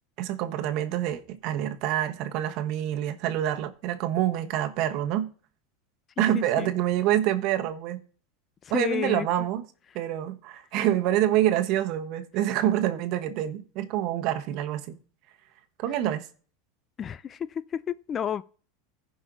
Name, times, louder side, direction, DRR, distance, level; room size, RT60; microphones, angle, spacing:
voice 1, 0.2-5.3 6.2-8.0 8.7-9.6 9.9-15.0 15.8-16.3, right 12 dB, 50° right, 1.2 m, -26 dB
voice 2, 6.2-6.7 8.6-9.3 17.0-18.4, left 8 dB, 25° left, 0.3 m, -31 dB
15.5 x 5.4 x 3.9 m
supercardioid pair, 140°, 0 cm